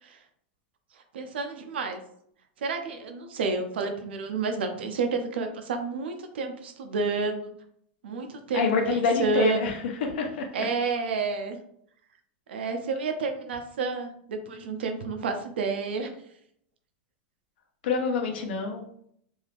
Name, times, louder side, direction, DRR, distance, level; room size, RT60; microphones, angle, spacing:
voice 1, 0.9-2.0 2.6-7.5 8.0-9.7 10.5-11.6 12.5-16.1, right 4 dB, 85° right, 5 dB, 0.6 m, -30 dB
voice 2, 8.5-10.5 17.8-18.8, left 4 dB, 75° left, 3 dB, 0.8 m, -26 dB
3.2 x 2.7 x 2.5 m, 0.69 s
hypercardioid pair, 120°, 6 cm